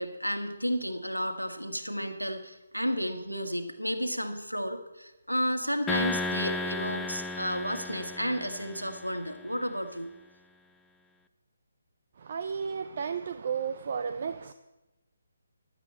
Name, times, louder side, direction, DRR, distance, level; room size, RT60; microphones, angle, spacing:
voice 1, 0.0-10.1, equal, 90° right, 1.7 m, -32 dB
sound 1, 5.9-9.3, left 3 dB, 10° left, 0.6 m, -34 dB
voice 2, 12.3-14.5, right 6 dB, 40° right, 0.6 m, -33 dB
16.0 x 12.0 x 4.4 m
figure-of-eight pair, 140°, 0 cm